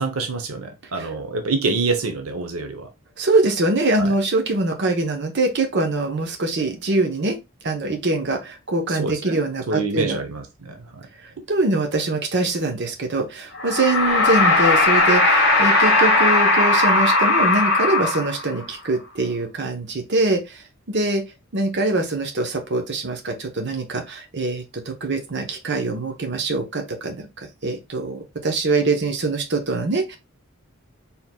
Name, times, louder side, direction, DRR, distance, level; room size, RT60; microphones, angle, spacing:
voice 1, 0.0-2.9 4.0-4.1 8.9-9.4 9.7-11.0, right 3 dB, 85° right, 0.8 m, -26 dB
voice 2, 3.2-7.4 7.6-10.2 11.2-21.2 21.5-30.2, right 2 dB, 55° right, 0.8 m, -23 dB
sound 1, 13.5-18.6, left 2 dB, 55° left, 1.6 m, -17 dB
4.3 x 3.6 x 2.2 m
head